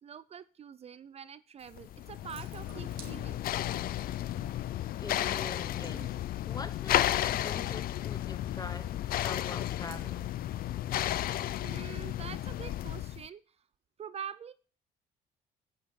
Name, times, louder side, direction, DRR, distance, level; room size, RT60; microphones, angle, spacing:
voice 1, 0.0-3.4 4.3-4.7 11.6-13.6 14.0-14.5, right 8 dB, 40° right, 0.5 m, -45 dB
Water tap faucet / Sink (filling or washing) / Drip, 1.6-11.4, right 6 dB, 55° right, 2.5 m, -58 dB
sound 1, 1.8-13.3, left 13 dB, 60° left, 0.5 m, -33 dB
voice 2, 5.0-9.0 9.2-10.3, left 4 dB, 20° left, 1.1 m, -43 dB
8.9 x 6.6 x 7.3 m
cardioid pair, 110°, 17 cm